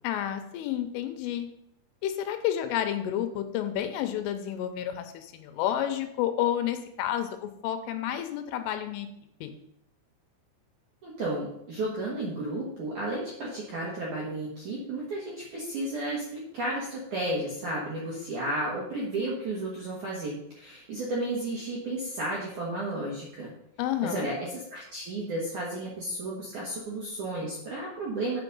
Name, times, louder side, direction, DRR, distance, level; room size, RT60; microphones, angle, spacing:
voice 1, 0.0-1.5 2.0-9.1 9.4-9.5 23.8-24.3, left 11 dB, 80° left, 7 dB, 3.2 m, -30 dB
voice 2, 11.0-23.5 24.0-28.4, right 1 dB, 65° right, -5 dB, 1.9 m, -33 dB
8.1 x 6.0 x 5.4 m, 0.77 s
omnidirectional pair, 5.8 m